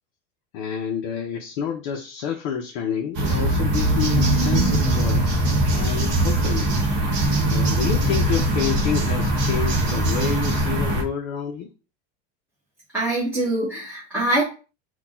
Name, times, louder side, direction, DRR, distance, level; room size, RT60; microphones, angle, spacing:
voice 1, 0.5-5.3 5.7-6.7 7.5-11.7, left 8 dB, 45° left, 1 dB, 0.6 m, -29 dB
small passbys then bird ambience, 3.1-11.0, right 1 dB, 30° right, 1.0 m, -21 dB
voice 2, 12.9-14.4, right 1 dB, 5° right, -9 dB, 1.1 m, -23 dB
4.2 x 2.3 x 4.1 m, 0.33 s
supercardioid pair, 175°, 35 cm